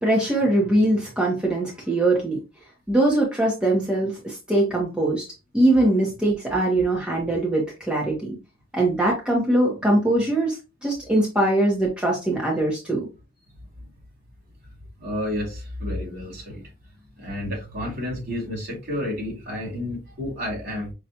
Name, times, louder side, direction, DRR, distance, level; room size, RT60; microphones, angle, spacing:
voice 1, 0.0-2.4 2.9-5.2 5.5-8.4 8.7-13.1, right 1 dB, 5° right, 0.8 m, -22 dB
voice 2, 15.0-16.6 17.2-20.9, left 1 dB, 50° right, 2.4 m, -30 dB
5.5 x 2.3 x 2.7 m
head